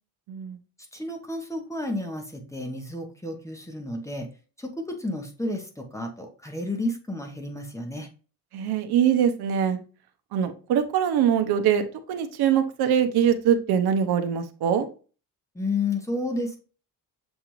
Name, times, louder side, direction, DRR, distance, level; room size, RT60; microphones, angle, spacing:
voice 1, 0.9-4.3 4.6-8.1 15.5-16.6, left 2 dB, 10° left, 3 dB, 0.8 m, -31 dB
voice 2, 8.5-9.8 10.3-11.8 12.1-14.9, right 8 dB, 85° right, 8 dB, 0.7 m, -23 dB
7.1 x 2.5 x 3.0 m, 0.37 s
cardioid pair, 115°, 37 cm